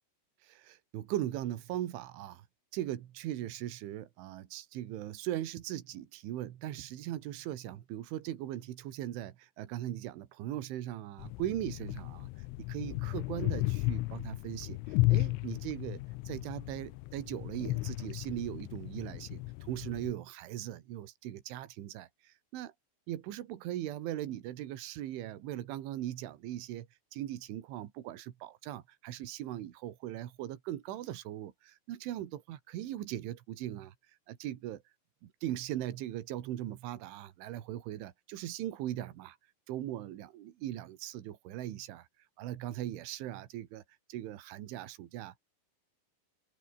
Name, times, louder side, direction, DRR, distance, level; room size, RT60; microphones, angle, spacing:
voice 1, 0.4-2.5 2.7-12.3 12.6-22.7 23.1-33.9 34.3-34.8 35.2-39.4 39.7-42.1 42.4-43.8 44.1-45.4, right 13 dB, 75° right, 4.3 m, -39 dB
sound 1, 11.2-20.1, left 22 dB, 90° left, 3.3 m, -34 dB
omnidirectional pair, 5.6 m